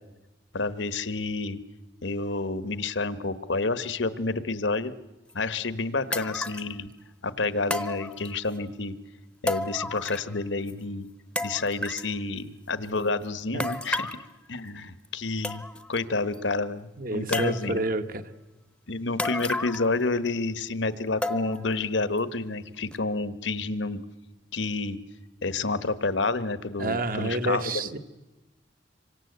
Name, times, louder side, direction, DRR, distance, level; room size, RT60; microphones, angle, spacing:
voice 1, 0.5-1.6 2.0-4.9 5.3-6.9 7.2-9.0 9.4-11.1 11.4-14.2 14.5-15.6 15.9-17.8 18.9-24.0 24.5-25.0 25.4-27.9, left 3 dB, 75° left, 14 dB, 1.3 m, -29 dB
sound 1, 5.3-5.4 6.1-6.7 7.7-8.6 9.5-10.4 10.7-10.8 11.4-12.1 13.6-14.2 15.0-15.1 15.4-16.0 16.3-16.4 17.3-17.9 19.2-20.0 20.3-20.4 21.2-21.7 22.2-22.3 22.9-23.0, left 1 dB, 5° left, 0.9 m, -32 dB
voice 2, 17.0-18.2 26.8-28.0, right 2 dB, 50° right, 8 dB, 1.4 m, -29 dB
27.0 x 24.5 x 8.1 m, 1.1 s
head